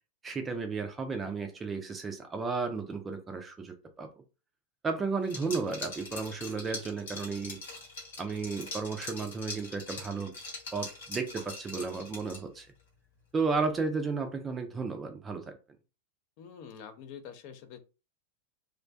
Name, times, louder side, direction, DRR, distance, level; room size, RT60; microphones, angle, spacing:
voice 1, 0.2-4.1 4.8-7.6 8.2-10.3 10.7-12.7 13.3-15.6, right 4 dB, 15° right, 6 dB, 0.4 m, -33 dB
Liquid, 5.2-12.6, left 3 dB, 65° left, 1.0 m, -42 dB
voice 2, 16.4-17.8, left 7 dB, 45° left, 10 dB, 0.4 m, -46 dB
2.4 x 2.1 x 2.3 m, 0.32 s
figure-of-eight pair, 90°, 0 cm